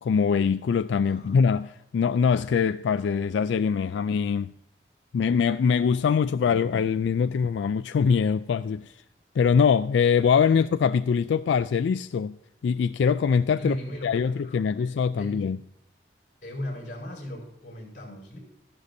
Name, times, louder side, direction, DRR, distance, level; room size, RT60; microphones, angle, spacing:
voice 1, 0.0-4.5 5.1-8.9 9.4-12.4 12.6-13.8 14.0-15.6, left 6 dB, 85° left, 0.3 m, -23 dB
voice 2, 1.0-1.4 10.5-10.7 13.6-14.9 15.1-15.4 16.4-18.4, left 1 dB, 50° left, 5.4 m, -37 dB
14.5 x 11.5 x 2.7 m
head